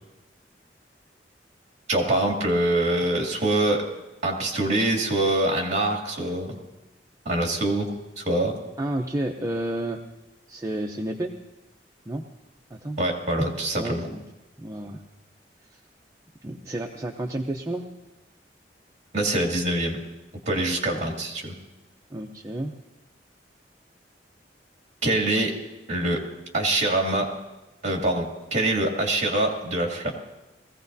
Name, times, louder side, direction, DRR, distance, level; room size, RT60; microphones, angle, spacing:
voice 1, 1.9-3.8 4.2-6.6 7.2-7.9 8.2-8.6 13.0-14.1 19.1-20.0 20.5-21.5 25.0-25.6 25.9-26.2 26.5-27.3 27.8-30.1, right 1 dB, 40° right, 0 dB, 2.4 m, -24 dB
voice 2, 8.8-10.0 10.5-11.3 12.1-12.2 12.7-13.0 13.8-14.2 14.6-15.0 15.7-15.8 16.4-17.9 22.1-22.7, right 1 dB, 20° right, 1 dB, 0.6 m, -31 dB
21.0 x 15.5 x 2.7 m, 1.0 s
head